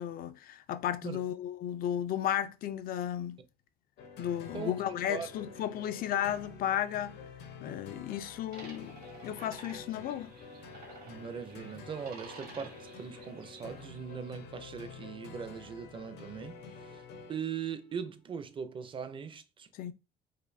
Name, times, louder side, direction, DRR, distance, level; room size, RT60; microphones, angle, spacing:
voice 1, 0.0-3.4 4.2-7.2 7.6-9.0 9.2-10.3 19.7-19.9, left 10 dB, 60° left, 0.4 m, -34 dB
sound 1, 4.0-17.7, left 5 dB, 75° left, 0.8 m, -49 dB
sound 2, 8.5-14.6, right 3 dB, 70° right, 1.6 m, -53 dB
voice 2, 11.1-19.7, right 7 dB, 30° right, 0.5 m, -40 dB
4.1 x 2.6 x 2.6 m
cardioid pair, 110°, 17 cm